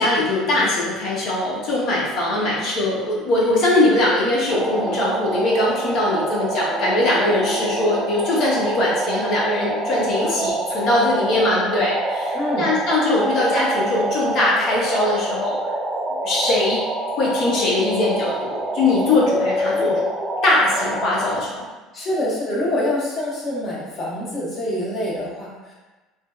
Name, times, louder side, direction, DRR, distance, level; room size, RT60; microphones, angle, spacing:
voice 1, 0.0-15.6 16.2-16.8 17.2-19.9 20.4-21.7, left 2 dB, 60° left, -5 dB, 0.7 m, -21 dB
sound 1, 4.5-21.4, right 1 dB, 30° right, 0.4 m, -26 dB
voice 2, 12.3-12.7 19.7-20.0 21.9-25.7, left 1 dB, 40° left, -5 dB, 1.0 m, -26 dB
2.7 x 2.3 x 2.2 m, 1.2 s
hypercardioid pair, 75°, 0 cm